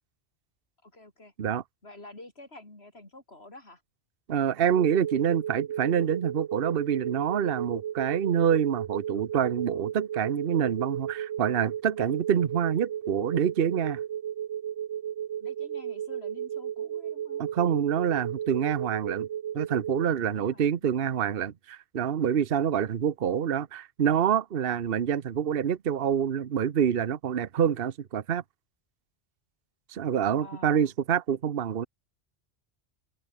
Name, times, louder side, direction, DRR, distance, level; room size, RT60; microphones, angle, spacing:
voice 1, 0.8-1.3 1.8-3.8 8.2-8.3 15.4-17.5 20.2-20.9 21.2-21.5 30.4-30.9, left 2 dB, 60° left, 4.8 m, -49 dB
voice 2, 4.3-14.0 17.4-19.3 19.5-28.4 29.9-31.9, right 8 dB, 55° right, 1.1 m, -26 dB
sound 1, 4.7-20.1, right 10 dB, 85° right, 1.2 m, -34 dB
omnidirectional pair, 1.2 m